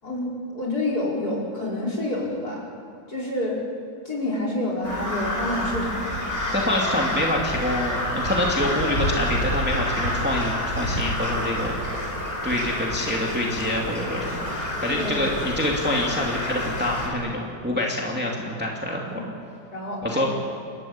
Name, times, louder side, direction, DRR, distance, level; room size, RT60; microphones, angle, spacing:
voice 1, 0.0-2.7 3.1-3.6 4.1-6.2 15.0-15.2 18.9-19.0 19.7-20.3, left 1 dB, 45° left, -3 dB, 5.5 m, -28 dB
Crow, 4.8-17.1, left 1 dB, 25° left, 3.8 m, -28 dB
voice 2, 6.5-12.0 12.4-19.0 20.0-20.3, left 1 dB, 5° right, -2 dB, 2.5 m, -26 dB
28.5 x 13.5 x 8.7 m, 2.5 s
omnidirectional pair, 2.2 m